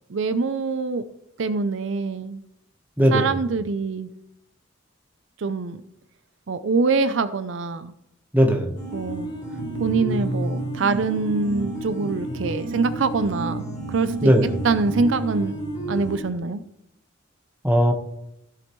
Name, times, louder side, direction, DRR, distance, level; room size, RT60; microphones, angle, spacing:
voice 1, 0.1-1.1 1.4-2.4 3.1-4.1 5.4-5.8 6.5-7.9 8.9-9.3 9.8-13.6 13.9-15.6 15.9-16.6, right 4 dB, 65° right, 12 dB, 0.5 m, -24 dB
voice 2, 3.0-3.3 8.3-8.7 14.2-14.5 17.6-17.9, equal, 10° right, 3 dB, 1.1 m, -18 dB
sound 1, 8.7-16.2, right 1 dB, 40° left, 3.9 m, -30 dB
14.5 x 7.8 x 3.1 m, 0.78 s
head